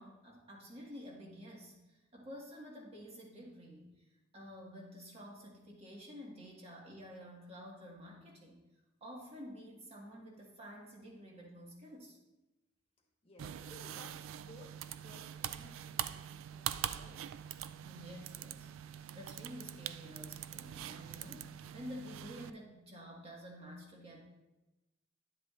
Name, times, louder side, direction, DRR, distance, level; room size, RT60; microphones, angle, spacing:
voice 1, 0.0-3.9 4.3-8.6 9.0-12.2 17.8-24.2, equal, 30° right, -2 dB, 1.7 m, -50 dB
voice 2, 13.2-17.2, left 1 dB, 30° left, 0 dB, 1.4 m, -58 dB
sound 1, 13.4-22.5, right 10 dB, 90° right, 0.3 m, -43 dB
10.5 x 7.3 x 2.5 m, 1.0 s
head